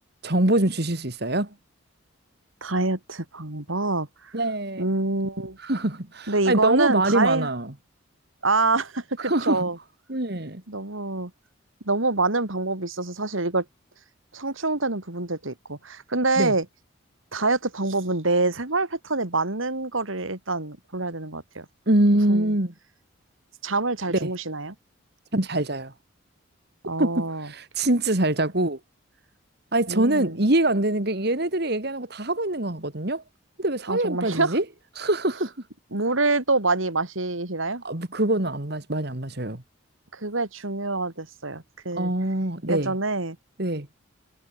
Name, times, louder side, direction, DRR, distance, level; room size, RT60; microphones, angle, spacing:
voice 1, 0.2-1.5 4.3-4.8 5.6-7.7 9.2-9.7 10.1-10.6 16.4-16.5 21.9-22.7 24.1-24.3 25.3-25.9 27.0-28.8 29.7-33.2 33.6-34.6 35.0-35.5 37.8-39.6 42.0-42.9 43.6-43.9, right 1 dB, 50° right, 2.2 m, -24 dB
voice 2, 2.6-4.3 4.8-5.6 6.3-7.5 8.4-9.8 10.7-11.3 11.8-13.6 14.3-16.7 17.3-21.6 22.3-22.5 23.6-24.7 26.8-27.5 29.9-30.4 33.9-34.6 35.9-37.8 40.1-42.1 42.7-43.4, right 3 dB, 75° right, 3.0 m, -26 dB
head